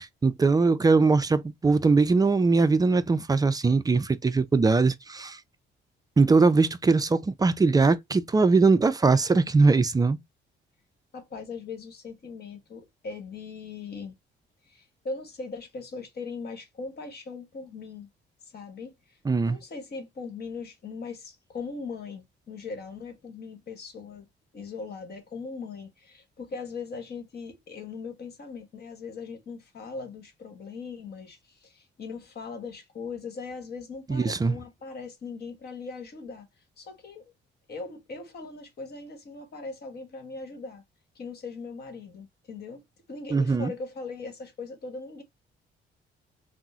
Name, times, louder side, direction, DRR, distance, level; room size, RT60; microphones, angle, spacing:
voice 1, 0.0-5.4 6.2-10.2 19.3-19.6 34.1-34.6 43.3-43.7, right 4 dB, 20° right, 0.3 m, -21 dB
voice 2, 11.1-14.2 14.7-18.1 18.5-19.2 19.5-24.3 24.5-36.5 36.8-37.3 37.7-40.8 41.1-45.2, left 4 dB, 55° left, 1.3 m, -39 dB
3.5 x 2.1 x 2.7 m
cardioid pair, 90°, 20 cm